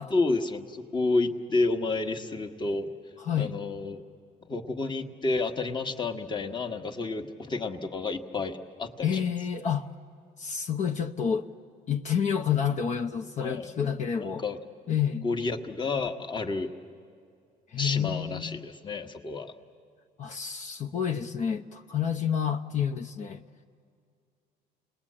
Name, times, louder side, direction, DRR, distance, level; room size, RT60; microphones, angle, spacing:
voice 1, 0.1-2.9 3.4-4.0 4.4-9.2 13.4-13.7 14.2-14.6 15.2-16.7 17.8-19.5, left 3 dB, 25° left, 4 dB, 1.4 m, -30 dB
voice 2, 3.2-3.5 9.0-9.9 10.4-11.5 11.9-14.4 14.9-15.3 17.7-18.6 20.2-23.4, left 8 dB, 45° left, 5 dB, 0.7 m, -29 dB
28.5 x 20.0 x 8.7 m, 2.3 s
cardioid pair, 110°, 17 cm